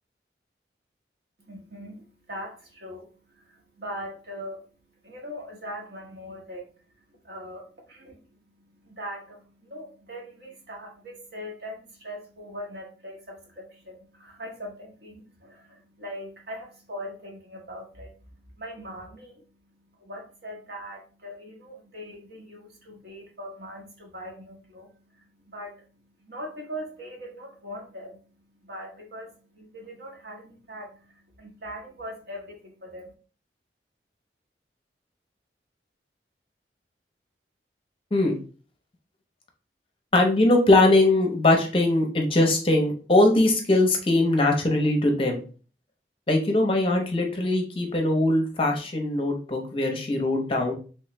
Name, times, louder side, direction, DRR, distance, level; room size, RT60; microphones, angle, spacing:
voice 1, 1.4-33.1, equal, 60° right, 0 dB, 1.0 m, -41 dB
voice 2, 40.1-45.4 46.3-50.7, left 2 dB, 30° left, 2 dB, 0.6 m, -21 dB
3.2 x 3.0 x 3.2 m, 0.37 s
head